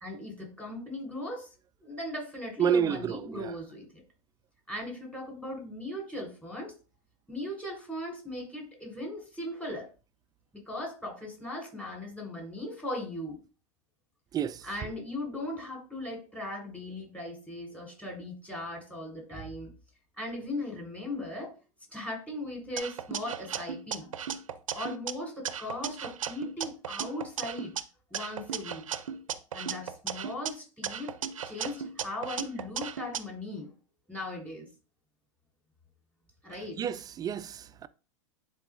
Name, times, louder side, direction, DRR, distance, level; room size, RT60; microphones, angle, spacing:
voice 1, 0.0-1.5 1.8-3.9 4.7-6.7 7.3-9.9 10.5-13.4 14.6-19.7 20.2-21.5 21.9-24.2 24.7-27.7 28.1-28.8 29.5-31.1 31.4-33.7 34.1-34.7 36.4-36.8, left 1 dB, 10° left, 3.5 m, -38 dB
voice 2, 2.6-3.5 14.3-14.7 36.8-37.9, right 8 dB, 25° right, 0.3 m, -29 dB
sound 1, 22.8-25.1 25.5-27.8 28.1-30.5 30.8-33.2, right 8 dB, 90° right, 0.5 m, -36 dB
10.0 x 3.9 x 2.5 m
hypercardioid pair, 100°, 17 cm